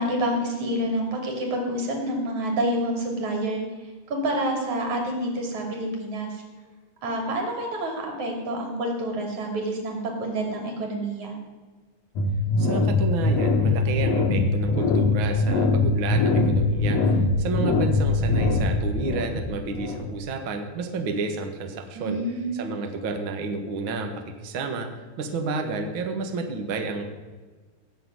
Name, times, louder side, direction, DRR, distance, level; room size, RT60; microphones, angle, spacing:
voice 1, 0.0-3.6 4.1-6.4 7.0-11.3 22.0-22.5, right 1 dB, 45° right, 1 dB, 4.1 m, -28 dB
sound 1, 12.2-20.3, left 3 dB, 65° left, 1.8 m, -22 dB
voice 2, 12.6-22.2 22.5-24.9 25.2-27.0, right 4 dB, 70° right, 4 dB, 1.1 m, -30 dB
17.5 x 6.9 x 9.7 m, 1.4 s
omnidirectional pair, 4.6 m